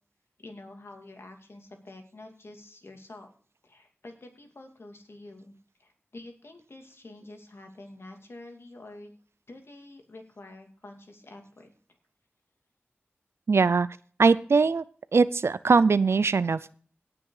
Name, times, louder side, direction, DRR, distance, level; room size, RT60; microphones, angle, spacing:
voice 1, 0.4-3.3 3.6-9.1 9.5-11.7, left 2 dB, 65° left, 4 dB, 2.5 m, -47 dB
voice 2, 13.5-13.9 14.2-14.8 15.1-16.7, right 4 dB, 75° right, 16 dB, 0.4 m, -21 dB
17.5 x 6.2 x 4.8 m, 0.43 s
wide cardioid pair, 65°, 4 cm